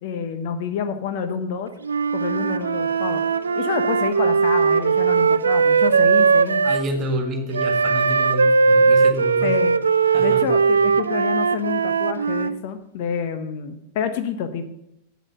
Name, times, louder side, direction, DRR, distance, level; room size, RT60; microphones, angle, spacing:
voice 1, 0.0-1.7 2.1-3.2 3.6-6.6 9.4-9.8 10.2-14.6, left 7 dB, 50° left, 9 dB, 0.9 m, -28 dB
Wind instrument woodwind instrument, 1.8-6.9 7.5-12.5, right 5 dB, 75° right, 0.3 m, -19 dB
Wind instrument woodwind instrument 2, 2.7-8.3, left 1 dB, 35° left, 2.6 m, -46 dB
voice 2, 6.6-9.5 10.1-10.6, equal, 30° right, 5 dB, 2.0 m, -28 dB
8.3 x 7.7 x 6.2 m, 0.79 s
figure-of-eight pair, 90°, 0 cm